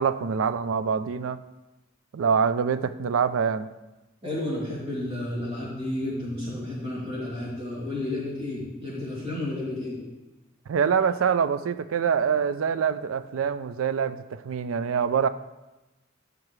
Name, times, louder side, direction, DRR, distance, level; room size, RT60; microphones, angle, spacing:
voice 1, 0.0-1.4 2.1-3.7 10.7-15.3, right 6 dB, 75° right, 13 dB, 0.4 m, -25 dB
voice 2, 4.2-10.0, left 1 dB, 30° right, -6 dB, 2.6 m, -31 dB
12.0 x 4.8 x 3.2 m, 1.0 s
head